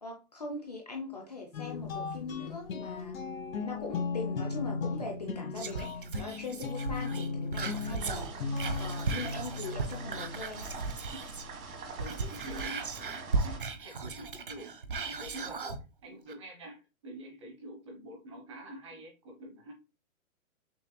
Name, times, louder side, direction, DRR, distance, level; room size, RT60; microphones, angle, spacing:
voice 1, 0.0-3.2 3.6-8.3 8.8-10.7, left 3 dB, 30° left, 1 dB, 0.6 m, -41 dB
sound 1, 1.5-10.4, left 4 dB, 70° left, 1.1 m, -36 dB
Whispering, 5.6-11.6 11.9-15.8 16.3-16.4, right 4 dB, 40° right, 0.4 m, -36 dB
sound 2, 8.0-13.6, right 3 dB, 90° right, 1.6 m, -45 dB
voice 2, 12.0-19.7, right 1 dB, 20° right, 1 dB, 1.0 m, -46 dB
6.1 x 2.8 x 2.2 m, 0.29 s
hypercardioid pair, 175°, 42 cm